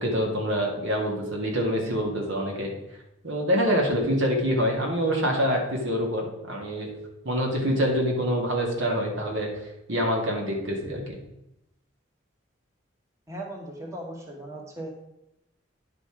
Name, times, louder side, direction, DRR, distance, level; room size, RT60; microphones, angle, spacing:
voice 1, 0.0-2.7 3.2-6.9 7.2-9.5 9.9-11.2, equal, 85° right, 0 dB, 2.1 m, -26 dB
voice 2, 13.3-14.9, right 1 dB, 15° right, 0 dB, 1.2 m, -38 dB
9.8 x 5.2 x 4.9 m, 0.87 s
head